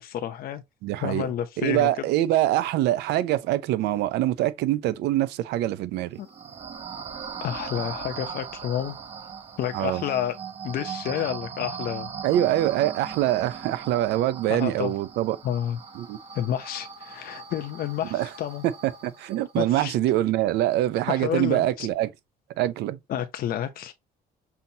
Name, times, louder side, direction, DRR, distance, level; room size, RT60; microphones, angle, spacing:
voice 1, 0.0-0.6 1.0-1.9 6.2-6.3 7.4-9.0 9.6-10.3 10.6-12.1 14.5-14.9 15.4-15.8 16.3-18.7 19.6-19.9 21.1-21.9 23.1-23.9, left 10 dB, 60° left, 0.7 m, -30 dB
voice 2, 0.8-1.3 1.6-6.2 9.7-10.0 12.2-15.4 16.0-16.2 18.1-18.3 18.8-22.1 22.6-23.0, right 14 dB, 80° right, 0.6 m, -24 dB
sound 1, 6.1-19.6, right 6 dB, 40° right, 0.8 m, -39 dB
5.7 x 2.7 x 2.7 m
cardioid pair, 110°, 17 cm